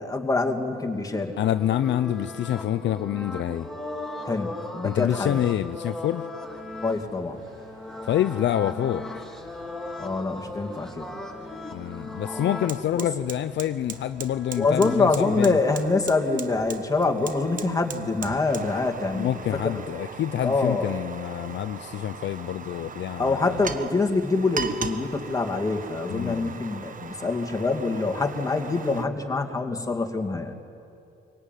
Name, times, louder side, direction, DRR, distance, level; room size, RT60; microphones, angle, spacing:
voice 1, 0.0-1.3 4.2-5.4 6.8-7.4 10.0-11.1 12.9-13.1 14.6-19.3 19.6-19.8 20.4-20.9 23.2-30.5, left 3 dB, 15° left, 3 dB, 2.4 m, -25 dB
sound 1, 1.0-12.8 13.9-15.0, left 2 dB, ahead, 2.8 m, -38 dB
voice 2, 1.4-3.7 4.8-6.3 8.0-9.1 11.7-15.6 19.1-23.6 26.1-26.6, left 11 dB, 65° left, 12 dB, 0.7 m, -27 dB
sound 2, 6.4-19.9, right 2 dB, 85° right, 7.9 m, -52 dB
Fire, 11.6-11.7 12.0-29.0, right 6 dB, 40° right, 1.2 m, -39 dB
24.5 x 18.0 x 9.2 m, 2.7 s
cardioid pair, 90°, 20 cm